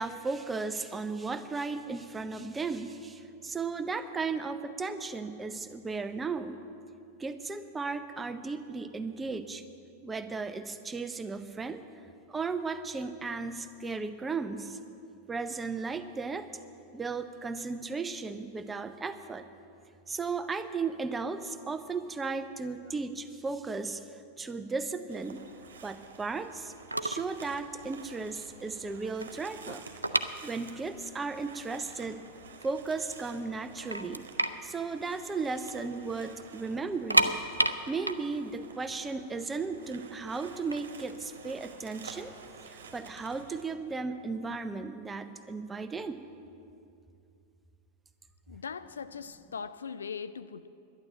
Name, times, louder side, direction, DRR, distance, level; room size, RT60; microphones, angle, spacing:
voice 1, 0.0-6.6 7.2-9.6 10.0-11.8 12.3-14.8 15.3-16.5 16.9-19.5 20.1-25.4 25.8-26.7 27.0-29.8 30.4-32.2 32.6-34.2 34.6-37.4 37.9-42.3 42.6-46.2, right 4 dB, 15° right, 10 dB, 0.7 m, -35 dB
sound 1, 25.1-43.6, right 5 dB, 65° right, 1.3 m, -51 dB
sound 2, 26.6-26.7 26.9-27.4 27.6-27.9 28.4-28.5 28.7-31.0 31.3-31.4 32.0-32.1 32.5-33.2 33.5-33.6 33.9-35.9 36.2-36.3 36.9-39.8 40.5-42.2, right 2 dB, 85° right, 0.5 m, -30 dB
voice 2, 48.5-50.7, left 6 dB, 70° left, 14 dB, 0.4 m, -40 dB
11.5 x 10.5 x 7.6 m, 2.6 s
figure-of-eight pair, 90°, 0 cm